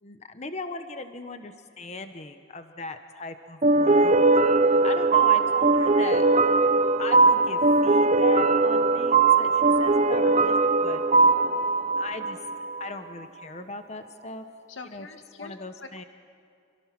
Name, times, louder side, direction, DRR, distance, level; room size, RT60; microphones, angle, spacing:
voice 1, 0.0-4.3 4.6-6.2 7.0-11.0 12.0-12.4 12.7-14.5 14.8-15.1 15.4-16.0, left 3 dB, 35° left, 8 dB, 1.1 m, -38 dB
sound 1, 3.6-12.9, right 3 dB, 35° right, 0.6 m, -20 dB
voice 2, 10.2-10.5 14.7-15.5 15.8-16.0, left 3 dB, 85° left, 7 dB, 1.5 m, -44 dB
27.0 x 25.0 x 6.1 m, 2.4 s
head